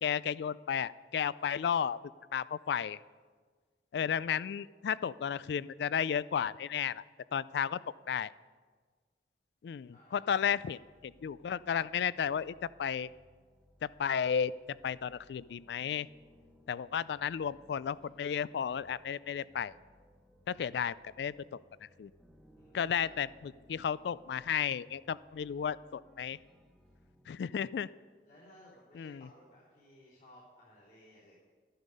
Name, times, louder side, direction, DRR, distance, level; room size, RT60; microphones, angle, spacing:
voice 1, 0.0-2.0 2.3-3.0 3.9-7.0 7.3-7.8 8.1-8.3 9.6-13.1 13.8-16.1 16.7-19.7 20.5-22.1 22.7-26.4 27.3-27.9 28.9-29.3, left 8 dB, 75° left, 19 dB, 0.3 m, -33 dB
voice 2, 9.9-10.5 22.5-23.2 28.2-31.4, left 1 dB, 50° left, -9 dB, 3.5 m, -59 dB
sound 1, 10.3-27.3, left 1 dB, ahead, 0.9 m, -64 dB
12.5 x 11.5 x 5.3 m, 1.5 s
head